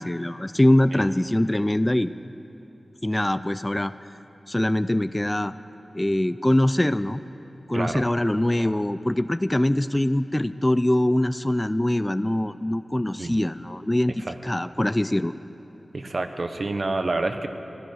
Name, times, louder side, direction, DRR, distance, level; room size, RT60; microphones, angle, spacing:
voice 1, 0.0-2.1 3.0-3.9 4.5-5.5 5.9-7.2 7.7-15.3, left 1 dB, 15° left, 14 dB, 0.3 m, -23 dB
voice 2, 7.7-8.1 13.2-13.4 14.2-14.4 15.9-17.5, right 2 dB, 55° right, 7 dB, 0.9 m, -28 dB
15.5 x 11.5 x 7.8 m, 2.9 s
wide cardioid pair, 75°, 0 cm